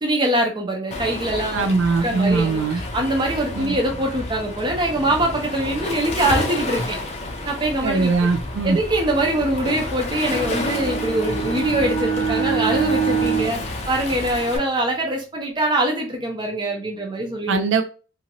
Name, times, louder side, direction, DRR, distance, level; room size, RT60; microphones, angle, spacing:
voice 1, 0.0-1.7 2.0-7.0 7.5-8.1 8.6-17.6, right 1 dB, 25° right, 1 dB, 0.6 m, -23 dB
Waves surf, 0.9-14.6, left 2 dB, 35° left, 0.5 m, -30 dB
voice 2, 1.5-2.8 3.6-3.7 7.8-8.8 17.5-17.8, right 4 dB, 70° right, 8 dB, 0.3 m, -21 dB
Bowed string instrument, 10.0-14.7, right 6 dB, 15° left, 1.0 m, -26 dB
2.8 x 2.5 x 2.7 m, 0.35 s
head